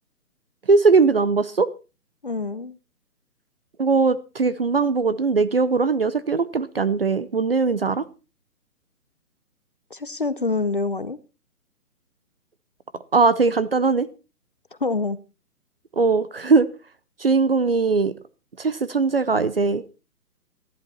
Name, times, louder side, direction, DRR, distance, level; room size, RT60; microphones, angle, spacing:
voice 1, 0.7-1.7 3.8-8.0 13.1-14.1 15.9-16.7 17.2-18.1 18.6-19.8, right 4 dB, 40° right, 0.6 m, -20 dB
voice 2, 2.2-2.8 9.9-11.2 14.8-15.2, left 3 dB, 35° left, 0.6 m, -26 dB
14.5 x 11.0 x 4.1 m
hypercardioid pair, 170°, 46 cm